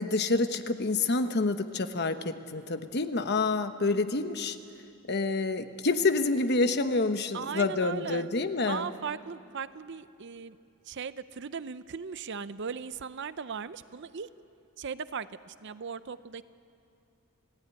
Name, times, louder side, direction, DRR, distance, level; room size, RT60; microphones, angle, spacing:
voice 1, 0.0-4.6 5.1-8.9, left 3 dB, 50° left, 9 dB, 1.1 m, -28 dB
voice 2, 7.3-8.3 8.7-10.6 10.9-14.3 14.8-16.4, right 6 dB, 55° right, 14 dB, 0.6 m, -38 dB
29.0 x 16.0 x 9.6 m, 2.6 s
head